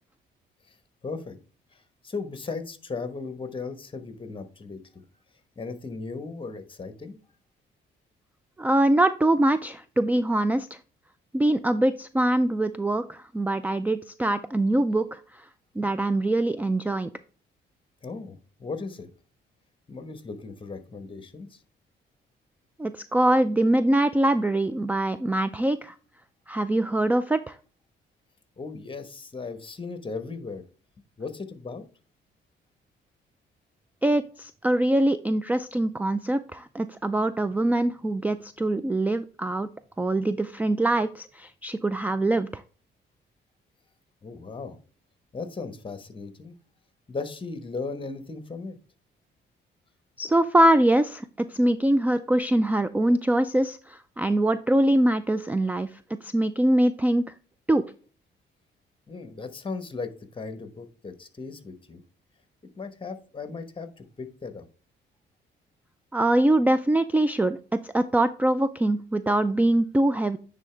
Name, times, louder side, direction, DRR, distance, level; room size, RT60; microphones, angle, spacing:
voice 1, 1.0-1.4 1.7-5.0 5.6-7.2 18.0-19.1 19.9-21.6 28.6-30.6 31.2-31.8 44.2-44.8 45.3-46.6 47.1-48.8 59.1-62.0 62.8-64.7, left 4 dB, 25° left, 10 dB, 1.1 m, -37 dB
voice 2, 8.6-10.8 11.3-15.5 15.8-17.1 22.8-25.9 26.5-27.6 34.0-39.7 40.0-42.6 50.2-55.9 56.2-57.2 57.7-57.8 66.1-70.4, right 1 dB, 10° right, 12 dB, 0.3 m, -23 dB
9.7 x 3.8 x 3.3 m, 0.38 s
cardioid pair, 90°, 20 cm